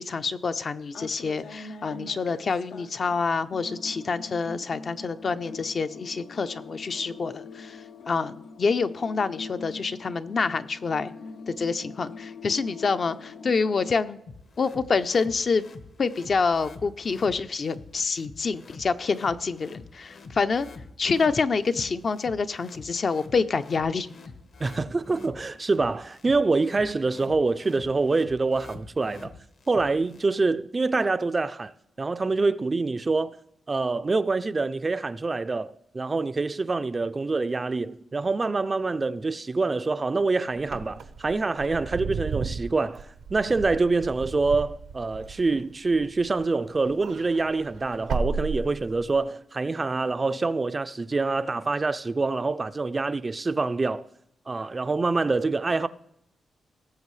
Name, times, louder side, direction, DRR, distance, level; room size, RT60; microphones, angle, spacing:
voice 1, 0.0-11.1 11.5-14.2 14.6-15.7 16.0-20.7 21.0-24.1, left 4 dB, 45° left, 0.5 m, -27 dB
sound 1, 0.9-3.2 3.5-14.0, left 4 dB, 85° left, 0.8 m, -43 dB
sound 2, 14.3-30.3, left 3 dB, 60° left, 1.2 m, -46 dB
voice 2, 24.6-29.3 29.7-31.7 32.0-33.4 33.7-54.0 54.5-55.9, right 3 dB, 25° right, 0.4 m, -26 dB
Wind / Car, 40.6-46.4 46.8-49.2, right 5 dB, 85° right, 0.8 m, -34 dB
18.5 x 7.4 x 3.2 m
wide cardioid pair, 125°, 0 cm